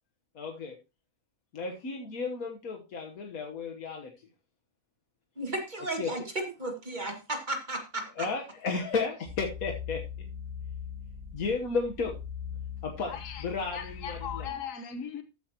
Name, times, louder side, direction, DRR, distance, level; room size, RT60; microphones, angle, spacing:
voice 1, 0.3-0.8 1.5-4.1 6.0-6.1 8.2-10.3 11.3-12.1 12.8-13.1 13.4-14.5, left 4 dB, 90° left, 1.7 m, -33 dB
voice 2, 5.4-8.3, right 2 dB, 35° right, 2.2 m, -34 dB
sound 1, 9.2-14.5, left 7 dB, 15° right, 5.2 m, -41 dB
voice 3, 13.1-15.2, left 7 dB, 70° left, 1.5 m, -39 dB
13.5 x 8.3 x 2.9 m
omnidirectional pair, 1.4 m